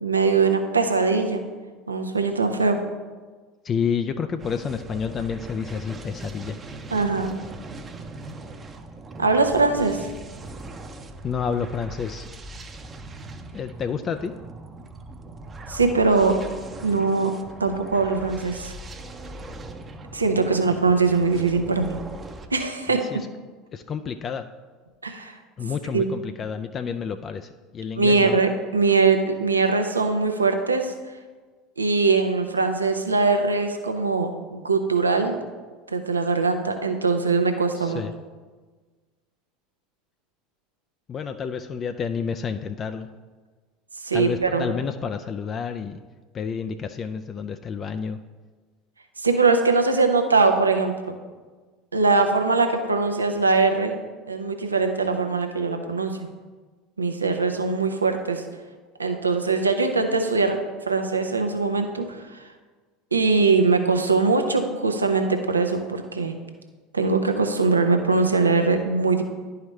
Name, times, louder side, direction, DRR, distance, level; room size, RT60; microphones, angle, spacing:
voice 1, 0.0-1.4 1.9-2.8 6.9-7.4 9.2-10.1 15.7-16.4 16.8-17.3 17.6-18.7 20.1-22.0 22.5-23.0 25.0-25.3 25.9-26.0 28.0-30.9 31.8-35.3 35.9-38.0 44.0-44.7 49.2-51.1 51.9-53.9 54.3-56.2 57.0-58.4 59.0-60.6 60.9-62.4 63.1-66.3 66.9-69.2, right 4 dB, 90° right, 6 dB, 0.6 m, -21 dB
voice 2, 3.6-6.6 11.2-12.3 13.5-14.3 22.9-23.3 23.7-24.5 25.6-28.4 37.8-38.1 41.1-43.1 44.1-46.0 46.3-48.2, left 6 dB, 35° left, 8 dB, 0.3 m, -29 dB
sound 1, 4.4-22.5, right 2 dB, 25° right, 0.7 m, -40 dB
10.5 x 4.8 x 3.2 m, 1.4 s
figure-of-eight pair, 75°, 0 cm